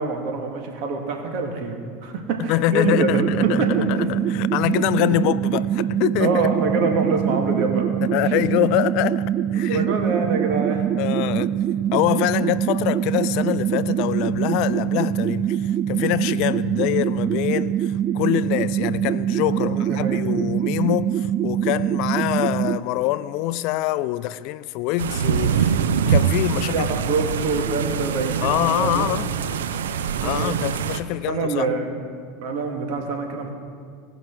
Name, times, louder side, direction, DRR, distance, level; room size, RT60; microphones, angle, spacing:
voice 1, 0.0-3.9 5.1-5.4 6.2-7.9 8.2-8.3 9.5-10.9 19.5-20.2 26.6-29.2 30.1-30.6 31.3-31.9 32.4-33.5, right 4 dB, 60° right, 1.9 m, -25 dB
voice 2, 2.4-6.5 8.0-9.3 9.5-9.9 11.0-11.5 11.9-26.9 28.4-29.3 30.2-31.7, left 16 dB, 60° left, 0.3 m, -25 dB
sound 1, 2.8-22.8, right 10 dB, 35° right, 0.4 m, -24 dB
sound 2, 25.0-31.0, right 7 dB, 85° right, 0.6 m, -24 dB
18.0 x 6.1 x 4.5 m
hypercardioid pair, 95°, 0 cm